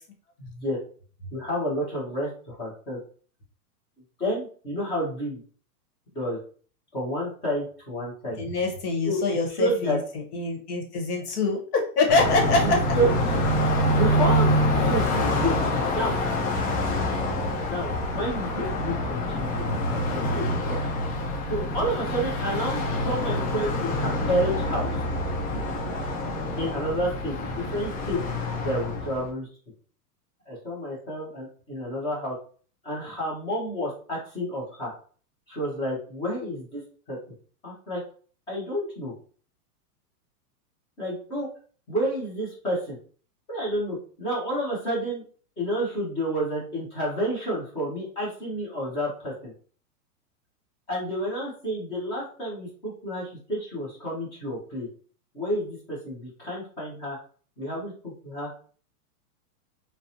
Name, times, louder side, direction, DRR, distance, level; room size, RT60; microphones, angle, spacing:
voice 1, 0.4-0.8 1.3-3.0 4.2-5.4 6.1-6.4 6.9-8.4 9.0-10.0 12.6-13.6 13.9-15.5 15.9-16.2 17.7-20.8 21.5-25.0 26.6-28.2 28.6-29.5 30.5-32.3 32.8-34.9 35.5-36.8 37.1-37.2 37.6-38.0 38.5-39.1 41.0-41.5 41.9-43.0 43.5-45.2 45.6-49.5 50.9-54.9 55.3-57.2 57.6-58.5, equal, 10° left, -5 dB, 0.4 m, -30 dB
voice 2, 8.4-10.0 10.3-12.8, left 3 dB, 75° left, 1 dB, 1.0 m, -24 dB
Car passing by, 12.1-29.3, left 1 dB, 55° left, 0.7 m, -26 dB
2.6 x 2.0 x 2.6 m, 0.42 s
hypercardioid pair, 135°, 47 cm